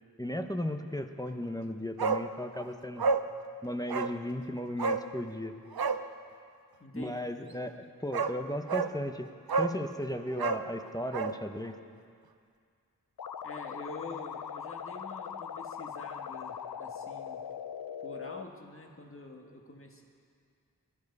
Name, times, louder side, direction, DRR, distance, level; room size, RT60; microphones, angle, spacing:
voice 1, 0.2-3.1 3.6-5.5 6.9-9.3 9.6-11.7, left 1 dB, 10° left, 6 dB, 0.9 m, -35 dB
Bark, 2.0-2.3 2.6-2.7 3.0-3.3 3.9-4.2 4.8-5.1 5.7-6.0 7.6-7.7 8.1-8.4 8.7-8.9 9.5-9.8 10.3-11.4 11.7-11.8, right 4 dB, 80° right, 0.7 m, -29 dB
voice 2, 6.8-7.1 13.4-17.4 18.0-20.0, left 2 dB, 35° left, 2 dB, 1.7 m, -46 dB
sound 1, 13.2-18.4, left 7 dB, 85° left, 0.5 m, -40 dB
20.5 x 12.5 x 5.4 m, 2.2 s
wide cardioid pair, 50°, 36 cm